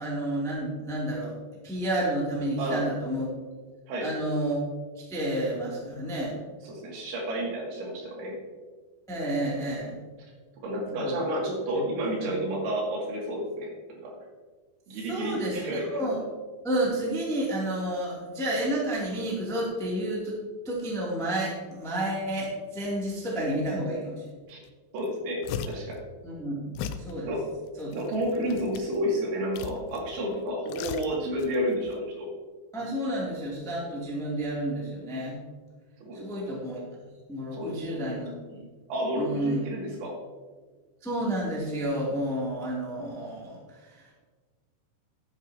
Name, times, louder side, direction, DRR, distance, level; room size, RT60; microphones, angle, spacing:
voice 1, 0.0-1.3 1.6-3.3 4.0-4.6 5.0-6.4 9.1-9.9 10.8-11.2 12.2-12.3 15.1-16.2 16.6-20.3 20.6-24.2 26.2-26.7 27.0-27.3 27.8-27.9 32.7-35.4 36.1-36.8 37.3-38.6 39.1-39.6 41.0-44.0, right 1 dB, 5° left, -5 dB, 0.6 m, -30 dB
voice 2, 2.6-3.0 3.9-4.1 6.6-8.4 10.6-14.2 14.9-16.0 24.5-24.6 24.9-26.0 27.3-27.5 27.9-32.3 36.0-36.2 37.5-38.1 38.9-40.2, equal, 75° right, -3 dB, 4.6 m, -31 dB
sound 1, 24.6-24.7 25.0-25.9 26.8-27.1 27.8-29.0 29.5-30.1 30.4-31.6 31.8-32.0, left 8 dB, 80° left, 2.8 m, -37 dB
12.5 x 9.8 x 2.8 m, 1.4 s
omnidirectional pair, 5.4 m